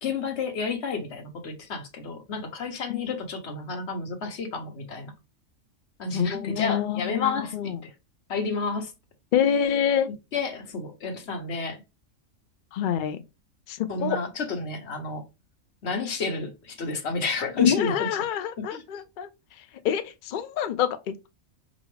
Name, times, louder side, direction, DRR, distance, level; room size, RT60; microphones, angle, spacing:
voice 1, 0.0-5.1 6.0-7.9 8.3-8.9 10.3-11.8 13.9-15.2 15.8-18.1 18.7-18.8, left 4 dB, 55° left, 1.1 m, -30 dB
voice 2, 6.1-7.8 9.3-10.1 12.7-13.2 13.7-14.2 17.6-19.3 19.6-21.3, left 9 dB, 90° left, 0.4 m, -26 dB
5.1 x 2.4 x 3.1 m
omnidirectional pair, 1.4 m